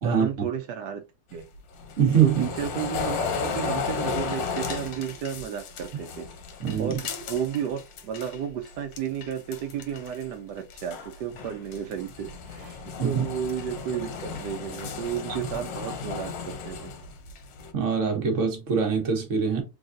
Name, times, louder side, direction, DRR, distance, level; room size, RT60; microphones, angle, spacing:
voice 1, 0.0-1.0 1.3-1.4 2.2-6.3 6.8-7.0 7.3-16.9, right 8 dB, 80° right, 0.9 m, -33 dB
sound 1, 1.3-8.4 8.7-10.3 10.6-17.7, left 5 dB, 65° left, 1.4 m, -34 dB
voice 2, 2.0-2.4 6.6-7.0 13.0-13.2 15.3-15.4 17.7-19.6, right 7 dB, 40° right, 1.2 m, -23 dB
3.9 x 3.5 x 2.5 m
omnidirectional pair, 2.4 m